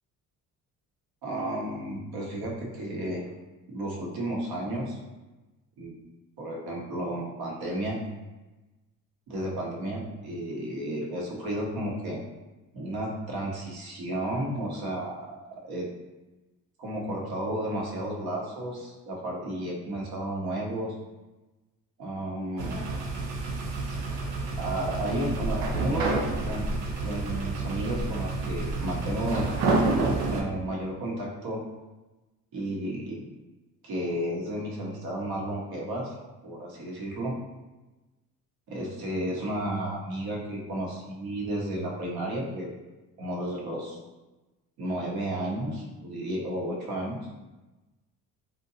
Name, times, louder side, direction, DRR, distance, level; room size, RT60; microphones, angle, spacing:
voice 1, 1.2-3.2 3.7-5.0 5.8-5.9 6.4-8.0 9.3-12.2 12.7-15.4 15.6-15.9 16.8-20.9 22.0-22.7 24.6-26.7 27.0-29.5 30.3-31.6 32.5-33.2 33.8-36.1 36.4-37.3 38.7-42.7 43.2-44.0 44.8-47.2, right 1 dB, 65° right, -2 dB, 0.9 m, -32 dB
sound 1, 22.6-30.4, right 3 dB, 85° right, 0.5 m, -29 dB
2.6 x 2.1 x 2.7 m, 1.1 s
supercardioid pair, 60°, 41 cm